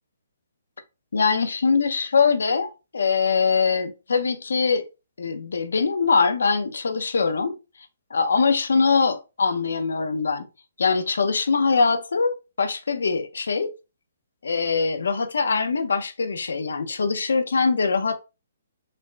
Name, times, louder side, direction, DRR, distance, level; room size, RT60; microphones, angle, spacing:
voice 1, 1.1-4.8 5.2-7.5 8.1-10.5 10.8-13.7 14.4-18.2, left 5 dB, 90° left, 0.6 m, -22 dB
4.1 x 2.0 x 3.3 m
hypercardioid pair, 170°, 0 cm